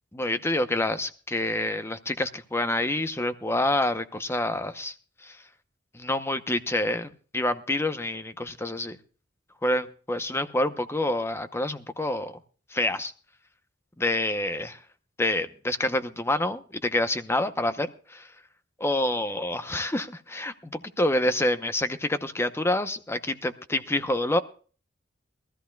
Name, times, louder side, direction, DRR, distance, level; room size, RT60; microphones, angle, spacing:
voice 1, 0.1-4.9 5.2-5.4 5.9-9.0 9.6-12.4 12.7-13.1 14.0-14.8 15.2-18.3 18.8-24.4, left 1 dB, 15° left, 11 dB, 0.8 m, -27 dB
22.5 x 14.0 x 2.3 m, 0.40 s
head